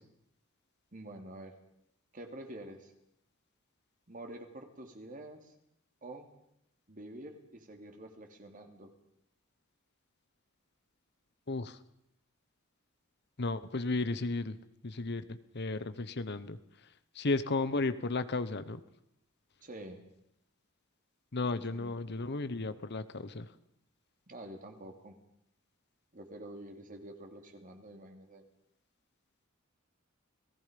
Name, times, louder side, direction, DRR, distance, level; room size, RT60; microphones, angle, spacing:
voice 1, 0.9-1.5 2.1-2.9 4.1-5.5 6.0-6.3 6.9-8.9 19.6-20.0 21.7-22.0 24.3-25.2 26.1-28.4, right 1 dB, 40° right, 4 dB, 2.9 m, -47 dB
voice 2, 11.5-11.8 13.4-14.6 14.8-16.6 17.1-18.8 21.3-23.5, left 3 dB, 55° left, 12 dB, 1.1 m, -34 dB
29.5 x 18.0 x 5.3 m, 0.78 s
head